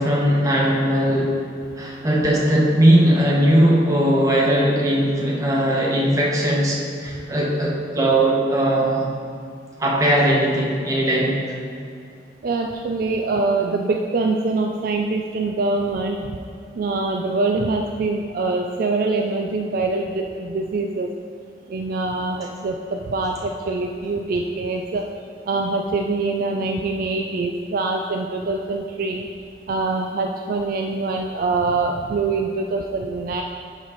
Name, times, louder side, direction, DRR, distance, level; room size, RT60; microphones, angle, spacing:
voice 1, 0.0-1.4 1.8-9.1 9.8-11.4, right 1 dB, 20° right, -4 dB, 1.1 m, -19 dB
voice 2, 12.4-16.4 16.8-21.1 21.7-25.1 25.4-29.3 29.7-33.4, right 3 dB, 50° right, 2 dB, 0.3 m, -24 dB
12.0 x 4.1 x 3.1 m, 2.4 s
head